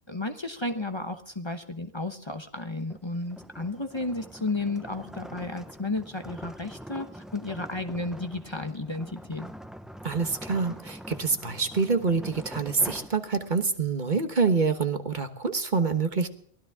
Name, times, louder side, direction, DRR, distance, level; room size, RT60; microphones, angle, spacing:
voice 1, 0.1-9.5, left 2 dB, 25° left, 7 dB, 1.0 m, -33 dB
sound 1, 2.8-13.8, equal, ahead, 0.8 m, -44 dB
voice 2, 10.0-16.3, right 4 dB, 45° right, 7 dB, 1.4 m, -26 dB
23.5 x 16.5 x 3.6 m, 0.64 s
omnidirectional pair, 1.1 m